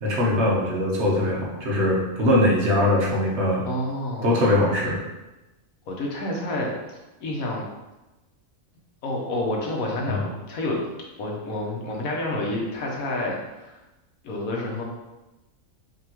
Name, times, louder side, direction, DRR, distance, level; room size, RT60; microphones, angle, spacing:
voice 1, 0.0-3.6 4.2-5.0 10.0-10.2, left 1 dB, 55° right, -4 dB, 1.1 m, -21 dB
voice 2, 3.7-4.3 5.9-6.7 7.2-7.7 9.0-10.8 11.2-13.8 14.2-14.8, left 1 dB, 80° left, -2 dB, 1.3 m, -29 dB
5.0 x 3.0 x 2.9 m, 1.0 s
omnidirectional pair, 1.5 m